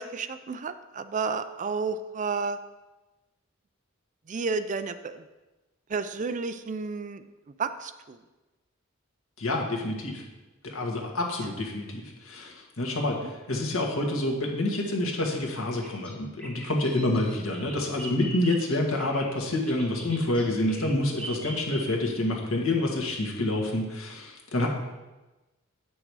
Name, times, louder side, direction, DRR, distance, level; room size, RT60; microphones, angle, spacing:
voice 1, 0.0-2.6 4.3-5.2 5.9-7.2 7.6-8.2 11.6-11.7 13.2-13.3, right 4 dB, 35° right, 11 dB, 0.4 m, -31 dB
voice 2, 9.4-10.2 10.6-24.7, left 1 dB, 85° left, 0 dB, 1.6 m, -28 dB
Bird vocalization bird call bird song, 15.6-22.2, right 1 dB, 5° left, 1.5 m, -42 dB
8.7 x 6.2 x 4.8 m, 1.1 s
head